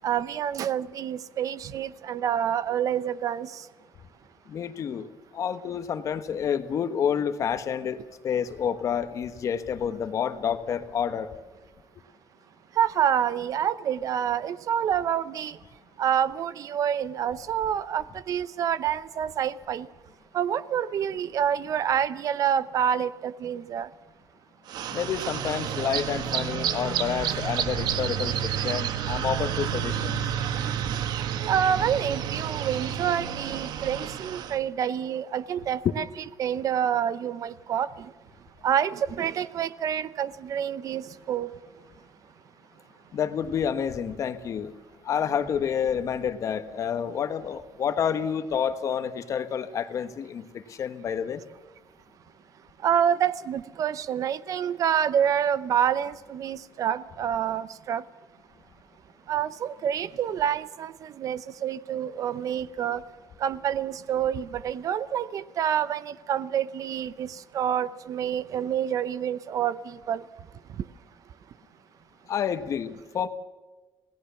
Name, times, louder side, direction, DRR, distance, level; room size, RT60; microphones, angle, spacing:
voice 1, 0.0-3.6 12.8-15.6 16.0-19.9 20.3-23.9 31.5-36.0 36.4-38.1 38.6-41.5 52.8-58.0 59.3-63.0 63.4-70.2, right 9 dB, 50° right, 16 dB, 0.7 m, -27 dB
voice 2, 4.5-5.1 5.3-11.3 24.9-30.3 43.1-44.7 45.0-51.4 72.3-73.3, left 8 dB, 45° left, 10 dB, 1.3 m, -29 dB
sound 1, 24.7-34.6, right 9 dB, 75° right, 1.3 m, -30 dB
27.5 x 18.0 x 7.1 m, 1.2 s
cardioid pair, 160°, 7 cm